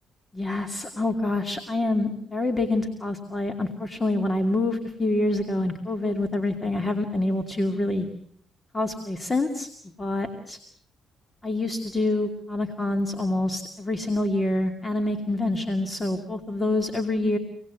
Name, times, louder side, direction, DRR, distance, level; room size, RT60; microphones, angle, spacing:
voice 1, 0.3-8.1 8.7-9.7 10.0-10.6 11.4-17.4, left 2 dB, 20° left, 6 dB, 2.5 m, -26 dB
26.5 x 19.0 x 8.3 m, 0.65 s
cardioid pair, 90°, 0 cm